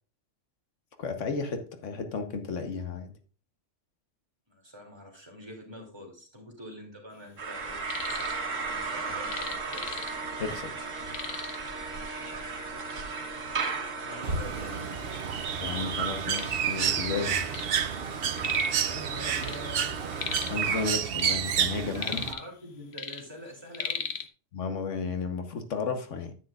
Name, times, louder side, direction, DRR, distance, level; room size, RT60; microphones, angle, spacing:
voice 1, 1.0-3.1 10.4-10.7 15.6-17.4 20.3-22.2 24.5-26.3, left 5 dB, 75° left, 7 dB, 1.4 m, -33 dB
voice 2, 4.5-8.2 8.5-10.0 14.1-14.9 18.9-20.0 21.8-24.1, left 1 dB, 20° right, -1 dB, 2.7 m, -45 dB
sound 1, 7.4-20.9, right 4 dB, 85° right, 1.8 m, -36 dB
sound 2, 7.6-8.4 8.7-10.4 10.7-10.8 11.1-11.7 12.5-12.6 13.2-13.3 14.0-14.1 14.4-15.2 15.7-17.8 18.0-18.8 19.1-20.7 21.0-22.6 22.9-24.3, left 7 dB, 60° left, 1.1 m, -37 dB
Bird, 14.2-22.3, right 8 dB, 55° right, 0.8 m, -30 dB
9.9 x 9.3 x 2.4 m, 0.38 s
omnidirectional pair, 1.3 m